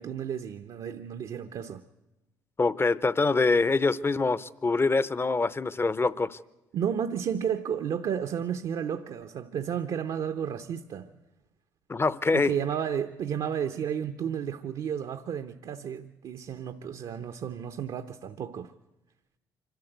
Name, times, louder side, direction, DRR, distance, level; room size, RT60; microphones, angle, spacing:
voice 1, 0.0-1.8 6.7-11.1 12.3-18.7, right 8 dB, 60° right, 0.9 m, -32 dB
voice 2, 2.6-6.4 11.9-12.5, left 3 dB, 25° left, 0.8 m, -25 dB
25.5 x 13.0 x 8.0 m
supercardioid pair, 60°, 9 cm